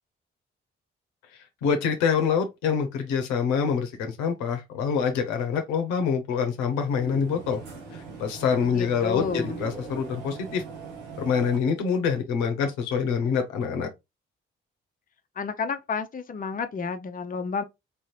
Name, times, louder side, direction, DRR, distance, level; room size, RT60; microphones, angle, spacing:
voice 1, 1.6-7.6 8.2-10.6 11.2-13.9, left 6 dB, 80° left, 0.8 m, -25 dB
sound 1, 6.5-11.6, right 5 dB, 85° right, 1.0 m, -40 dB
voice 2, 8.6-9.6 15.4-17.6, left 5 dB, 30° left, 0.6 m, -31 dB
3.4 x 2.8 x 3.1 m
hypercardioid pair, 40°, 30 cm